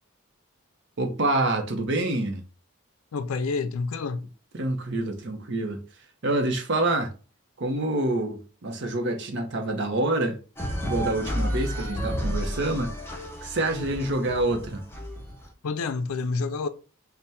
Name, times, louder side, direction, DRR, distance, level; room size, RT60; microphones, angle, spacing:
voice 1, 1.0-2.4 4.5-5.8 6.2-7.1 7.6-10.4 10.8-12.9 13.4-14.8, right 2 dB, 55° right, 0.7 m, -27 dB
voice 2, 3.1-4.3 15.6-16.7, left 4 dB, 80° left, 0.4 m, -28 dB
sound 1, 10.6-15.4, equal, 10° left, 0.5 m, -31 dB
3.4 x 2.2 x 4.1 m
head